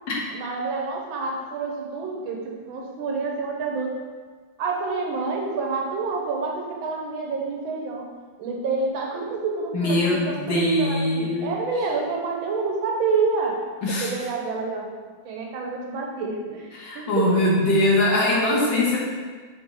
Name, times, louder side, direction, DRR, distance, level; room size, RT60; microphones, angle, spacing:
voice 1, 0.3-4.0 4.6-8.1 8.4-13.6 13.9-14.9 15.2-17.7 18.3-19.0, right 4 dB, 80° right, 0 dB, 1.7 m, -28 dB
voice 2, 9.7-11.6 13.8-14.3 16.7-19.0, left 1 dB, 65° left, -4 dB, 1.8 m, -22 dB
6.5 x 4.3 x 3.7 m, 1.5 s
omnidirectional pair, 2.2 m